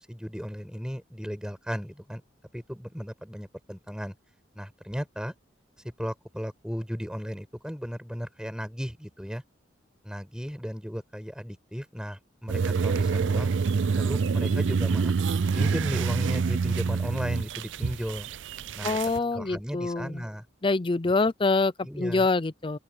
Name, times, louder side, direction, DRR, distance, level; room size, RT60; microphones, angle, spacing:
voice 1, 0.0-2.2 2.5-4.1 4.5-5.3 6.0-9.4 10.0-13.6 13.9-15.1 15.5-18.3 18.7-19.0 19.3-20.4 21.8-22.3, equal, 5° right, 6.5 m, -35 dB
sound 1, 12.5-19.2, right 5 dB, 75° right, 0.5 m, -26 dB
voice 2, 18.8-20.2 20.6-22.8, left 3 dB, 30° left, 0.6 m, -25 dB
open air
head